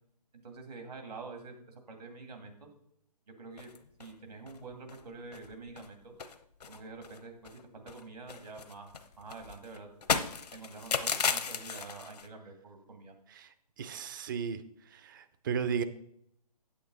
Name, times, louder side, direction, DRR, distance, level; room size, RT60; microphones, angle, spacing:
voice 1, 0.4-2.7 3.4-3.7 4.0-6.1 6.7-8.9 9.2-9.9 10.5-13.1, right 3 dB, 70° right, 4 dB, 2.6 m, -47 dB
sound 1, 3.6-4.1 4.5-4.6 4.9-5.0 5.3-5.9 6.2-7.6 7.9-12.3, left 6 dB, 70° left, 0.9 m, -35 dB
voice 2, 13.8-14.6 14.9-15.8, right 7 dB, 30° right, 12 dB, 0.6 m, -34 dB
8.4 x 8.4 x 4.0 m, 0.72 s
hypercardioid pair, 150°, 21 cm